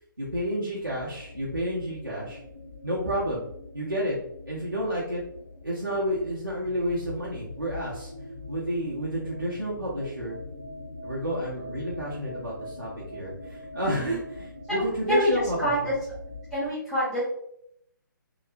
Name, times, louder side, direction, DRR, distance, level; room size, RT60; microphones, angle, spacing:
voice 1, 0.2-2.4 2.8-3.4 3.7-4.2 4.5-5.2 5.6-8.1 8.5-10.4 11.0-15.7, equal, 90° right, -8 dB, 0.8 m, -30 dB
sound 1, 0.8-16.7, left 2 dB, 40° left, 1.1 m, -43 dB
voice 2, 15.1-15.9 16.5-17.2, equal, ahead, -12 dB, 0.4 m, -26 dB
2.9 x 2.0 x 2.6 m, 0.74 s
figure-of-eight pair, 140°, 11 cm